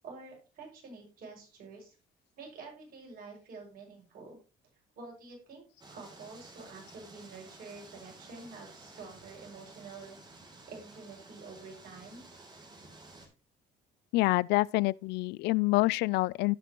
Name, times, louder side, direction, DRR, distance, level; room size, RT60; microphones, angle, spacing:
voice 1, 0.0-1.9 2.4-4.4 4.9-5.6 5.9-10.2 10.7-12.3, right 4 dB, 60° right, 6.5 m, -48 dB
sound 1, 5.8-13.3, right 2 dB, 25° right, 3.1 m, -53 dB
voice 2, 14.1-16.6, left 21 dB, 85° left, 0.4 m, -27 dB
17.5 x 5.9 x 3.0 m
cardioid pair, 110°, 17 cm